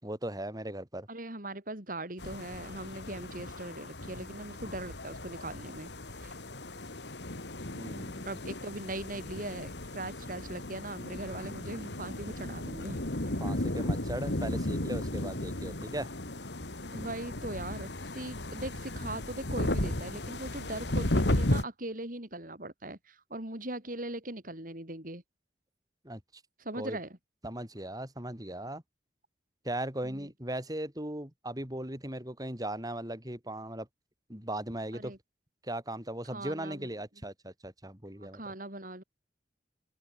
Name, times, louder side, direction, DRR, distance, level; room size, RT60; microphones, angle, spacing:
voice 1, 0.0-1.1 7.7-8.3 13.4-16.1 26.0-26.2 26.8-27.0 27.4-28.8 29.6-33.9 34.3-35.1 35.6-38.4, right 1 dB, 20° right, 6.6 m, -38 dB
voice 2, 1.1-5.9 6.2-6.3 8.2-13.3 16.9-25.2 26.6-27.2 30.0-30.3 34.9-35.2 36.2-36.9 38.2-39.0, right 1 dB, 50° right, 5.9 m, -40 dB
sound 1, 2.2-21.6, left 1 dB, 75° left, 2.6 m, -35 dB
open air
head